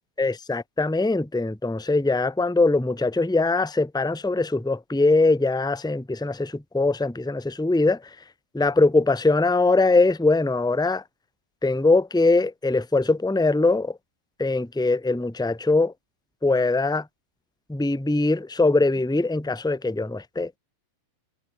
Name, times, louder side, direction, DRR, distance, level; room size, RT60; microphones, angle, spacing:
voice 1, 0.2-8.0 8.5-11.0 11.6-14.0 14.4-15.9 16.4-17.0 17.7-20.5, left 3 dB, ahead, 1.2 m, -22 dB
omnidirectional pair, 5.8 m